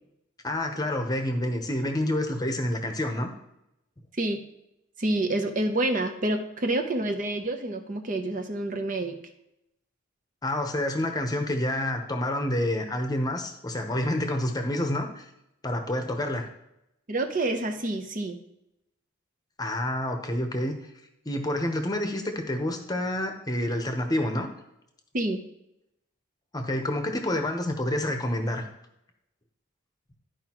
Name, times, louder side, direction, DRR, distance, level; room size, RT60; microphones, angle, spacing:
voice 1, 0.4-3.3 10.4-15.2 15.6-16.4 19.6-20.8 21.2-24.5 26.5-28.6, left 1 dB, 20° left, 5 dB, 0.9 m, -28 dB
voice 2, 5.0-9.2 17.1-18.4 25.1-25.4, right 2 dB, 40° right, 6 dB, 0.8 m, -28 dB
12.5 x 4.9 x 3.0 m, 0.85 s
head